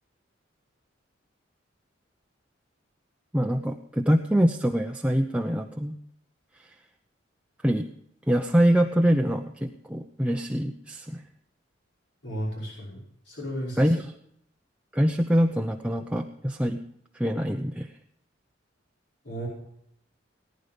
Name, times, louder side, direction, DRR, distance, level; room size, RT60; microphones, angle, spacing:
voice 1, 3.3-6.0 7.6-7.9 8.3-11.2 13.8-14.1 14.9-16.8 17.1-17.9, equal, 5° right, 2 dB, 0.8 m, -24 dB
voice 2, 12.2-13.9 19.2-19.5, equal, 70° left, -4 dB, 5.5 m, -34 dB
19.0 x 10.5 x 5.2 m, 0.72 s
head